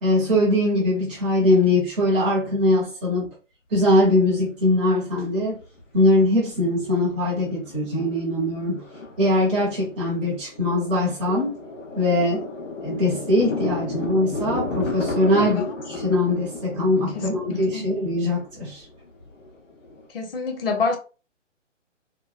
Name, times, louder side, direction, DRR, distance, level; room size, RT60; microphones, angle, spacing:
voice 1, 0.0-3.3 3.7-5.6 5.9-8.8 9.2-11.6 12.0-12.5 12.8-18.8, left 1 dB, 10° right, 0.5 m, -21 dB
Thunder, 4.0-4.1 5.4-6.2 6.5-6.6 7.0-7.3 7.7-20.1, left 2 dB, 85° left, 1.1 m, -33 dB
voice 2, 17.1-17.8 20.1-21.0, left 4 dB, 50° left, 0.8 m, -27 dB
2.8 x 2.3 x 2.5 m
figure-of-eight pair, 140°, 37 cm